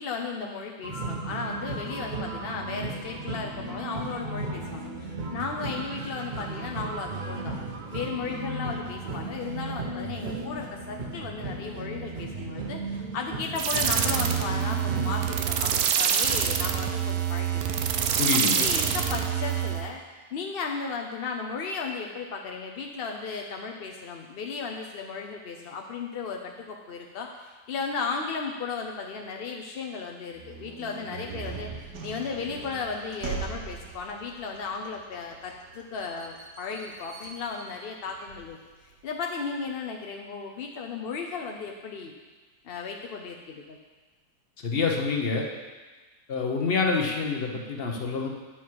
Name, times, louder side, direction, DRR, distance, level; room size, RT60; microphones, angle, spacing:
voice 1, 0.0-7.6 7.9-17.6 18.3-20.0 20.3-38.6 39.0-42.1 42.6-43.8, left 5 dB, 55° left, 1 dB, 0.6 m, -35 dB
sound 1, 0.8-15.3, right 2 dB, 55° right, 0.5 m, -35 dB
sound 2, 13.6-19.9, right 8 dB, 70° right, 1.1 m, -26 dB
voice 2, 18.2-18.7 44.6-45.5 46.3-48.3, left 4 dB, 40° left, 1 dB, 1.1 m, -27 dB
sound 3, 30.3-39.0, right 5 dB, 85° right, 1.6 m, -41 dB
9.0 x 7.4 x 4.7 m, 1.3 s
omnidirectional pair, 1.7 m